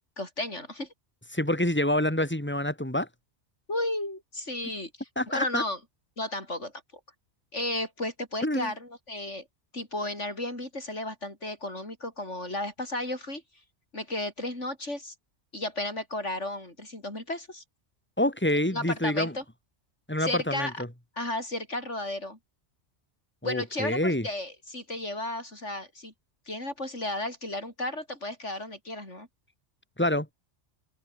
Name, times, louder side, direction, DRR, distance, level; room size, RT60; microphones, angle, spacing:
voice 1, 0.2-0.9 3.7-4.9 5.3-5.8 6.2-6.7 7.5-9.4 9.7-13.4 13.9-15.1 15.5-17.6 18.7-19.4 20.2-20.8 21.2-22.4 23.4-26.1 26.5-29.3, left 1 dB, 80° left, 7.5 m, -33 dB
voice 2, 1.3-3.1 5.2-5.6 8.4-8.7 18.2-19.3 20.1-20.9 23.4-24.3 30.0-30.3, left 1 dB, 10° left, 4.8 m, -27 dB
omnidirectional pair, 1.2 m